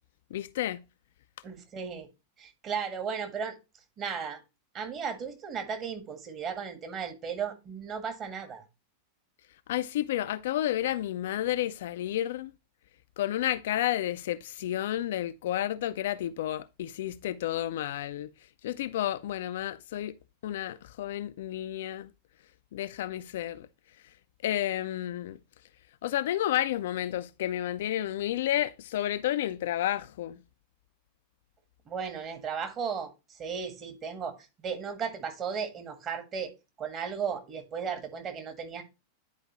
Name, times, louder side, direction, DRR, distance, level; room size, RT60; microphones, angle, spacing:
voice 1, 0.3-0.8 9.7-12.5 13.2-18.3 18.6-20.1 20.4-22.1 22.7-23.7 24.4-25.4 26.0-30.4, left 12 dB, 55° left, 0.4 m, -31 dB
voice 2, 1.4-2.1 2.4-3.5 4.0-4.4 4.7-8.6 31.9-34.4 34.6-36.5 36.8-38.8, right 6 dB, 30° right, 1.6 m, -35 dB
9.8 x 4.8 x 3.0 m
figure-of-eight pair, 90°, 0 cm